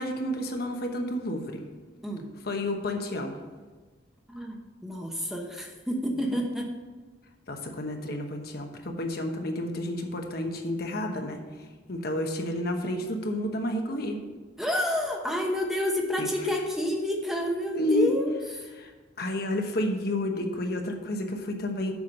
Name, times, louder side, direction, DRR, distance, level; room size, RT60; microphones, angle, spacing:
voice 1, 0.0-1.6 2.4-3.4 7.5-14.2 16.2-16.3 17.8-18.1 18.7-18.9 19.2-21.9, left 1 dB, 55° left, 3 dB, 1.0 m, -30 dB
voice 2, 4.3-6.7 14.6-18.3 18.6-18.7, equal, ahead, 1 dB, 0.9 m, -29 dB
7.2 x 5.8 x 6.5 m, 1.3 s
head